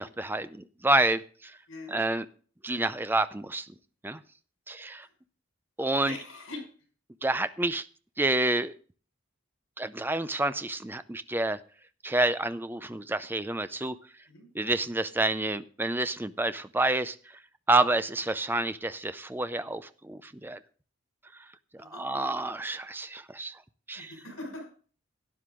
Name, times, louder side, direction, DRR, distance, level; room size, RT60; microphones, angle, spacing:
voice 1, 0.0-1.6 1.9-2.3 2.6-3.7 4.0-4.2 4.7-5.1 5.8-6.2 7.2-7.9 8.2-8.7 9.8-11.6 12.0-14.0 14.5-17.2 17.7-20.6 21.7-23.6 23.9-24.1, right 2 dB, 10° right, 12 dB, 0.5 m, -28 dB
voice 2, 6.1-6.6 14.3-14.5 21.8-22.1 23.9-24.7, left 2 dB, 75° left, 3 dB, 5.4 m, -42 dB
12.5 x 10.0 x 3.8 m, 0.41 s
head